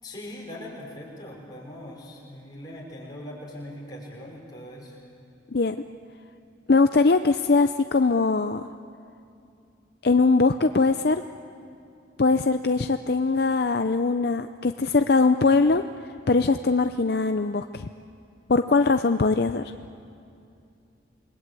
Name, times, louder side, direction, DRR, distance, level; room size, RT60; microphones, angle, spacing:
voice 1, 0.0-5.0, left 1 dB, 20° left, -3 dB, 5.7 m, -41 dB
voice 2, 6.7-8.7 10.0-11.2 12.2-15.8 16.3-17.9 18.5-19.6, left 3 dB, 55° left, 8 dB, 0.5 m, -21 dB
28.0 x 21.5 x 8.4 m, 2.5 s
head